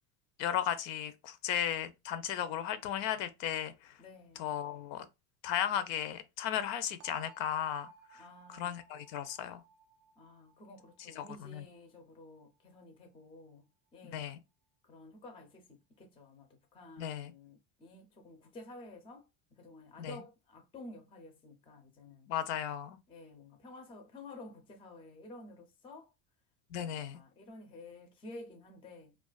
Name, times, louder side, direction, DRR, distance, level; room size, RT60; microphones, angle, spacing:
voice 1, 0.4-3.9 4.4-5.1 5.4-8.2 8.5-9.6 11.2-11.3 11.5-11.6 14.1-14.4 17.0-17.3 20.0-20.1 22.3-23.0 26.7-27.2, left 10 dB, 65° left, 0.5 m, -35 dB
voice 2, 4.0-4.6 8.2-8.8 10.2-14.4 14.8-22.3 23.1-26.1 26.7-29.2, left 2 dB, 15° left, 0.4 m, -52 dB
sound 1, 7.0-12.8, right 6 dB, 45° right, 0.5 m, -61 dB
2.4 x 2.4 x 2.3 m
cardioid pair, 130°, 46 cm